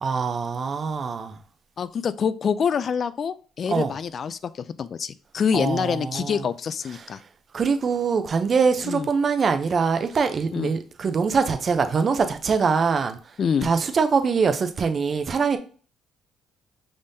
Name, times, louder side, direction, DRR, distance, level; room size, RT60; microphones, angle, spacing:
voice 1, 0.0-1.4 3.7-3.9 5.5-6.4 7.5-13.2 13.6-15.6, right 5 dB, 40° right, 0.6 m, -23 dB
voice 2, 1.8-7.2 8.8-9.1 10.5-10.7 13.4-13.7, left 6 dB, 45° left, 0.3 m, -26 dB
5.2 x 3.5 x 2.7 m
cardioid pair, 90°, 0 cm